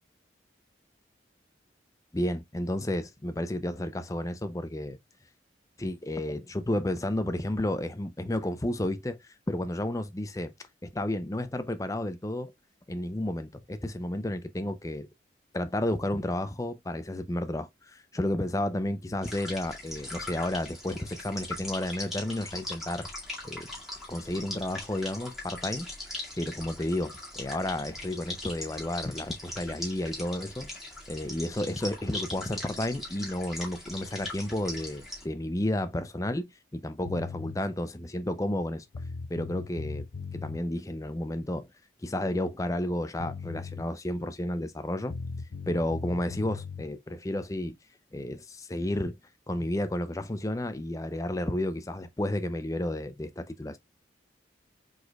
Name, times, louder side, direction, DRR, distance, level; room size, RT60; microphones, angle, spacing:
voice 1, 2.1-5.0 5.8-10.5 10.8-12.5 12.9-15.1 15.5-23.1 23.4-23.7 24.1-25.9 26.4-30.7 31.1-38.8 39.3-40.1 40.3-41.7 42.0-45.1 45.7-47.7 48.1-49.2 49.5-53.8, left 1 dB, 15° left, 0.5 m, -32 dB
sound 1, 19.2-35.2, left 1 dB, ahead, 2.2 m, -40 dB
sound 2, 37.0-37.6 38.6-38.7 38.9-40.6 42.8-42.9 43.2-43.8 45.1-46.9, left 4 dB, 85° left, 0.6 m, -38 dB
4.9 x 4.1 x 2.3 m
head